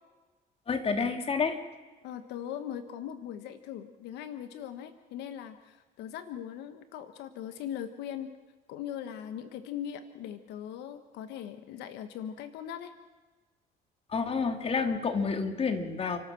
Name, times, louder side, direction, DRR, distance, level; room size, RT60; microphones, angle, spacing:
voice 1, 0.7-1.6 14.1-16.2, left 5 dB, 35° left, 6 dB, 2.7 m, -29 dB
voice 2, 2.0-8.3 8.7-12.9, left 9 dB, 85° left, 10 dB, 1.3 m, -40 dB
30.0 x 12.5 x 7.6 m, 1.3 s
cardioid pair, 110°, 17 cm